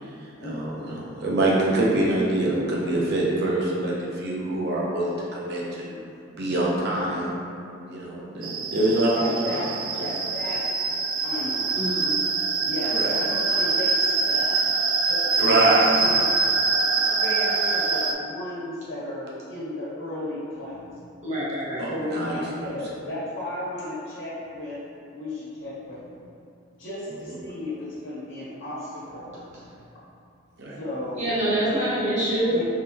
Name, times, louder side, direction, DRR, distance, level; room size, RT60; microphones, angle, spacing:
voice 1, 0.4-0.7 1.0-6.0 6.4-7.4 7.9-9.6 12.9-13.1 15.4-16.1 17.0-17.1 21.8-22.4 27.3-27.4 30.6-30.7, right 1 dB, 55° right, -5 dB, 0.7 m, -24 dB
sound 1, 8.4-18.1, right 4 dB, 75° right, 0.4 m, -24 dB
voice 2, 9.1-9.7 10.0-10.6 11.2-11.9 12.6-14.6 15.0-16.3 17.2-20.8 21.9-24.8 25.1-26.0 26.8-29.3 30.8-31.2 32.5-32.6, left 1 dB, 60° left, -11 dB, 1.4 m, -34 dB
voice 3, 11.8-12.2 21.2-21.8 29.5-29.8 31.1-32.6, right 1 dB, 35° right, -9 dB, 1.0 m, -26 dB
3.6 x 3.3 x 2.9 m, 2.5 s
head